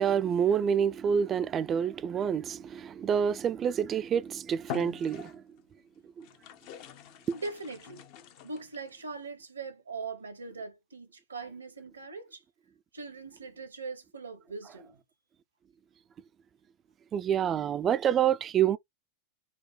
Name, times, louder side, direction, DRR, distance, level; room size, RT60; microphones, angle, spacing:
voice 1, 0.0-5.4 6.2-6.3 17.1-18.8, right 8 dB, 25° right, 0.4 m, -27 dB
sound 1, 4.0-4.2 4.6-5.6 6.2-9.0, left 10 dB, 45° left, 0.6 m, -44 dB
voice 2, 7.3-8.1 8.4-12.4 12.9-15.0, right 4 dB, 75° right, 1.0 m, -41 dB
4.7 x 2.2 x 3.3 m
figure-of-eight pair, 90°, 0 cm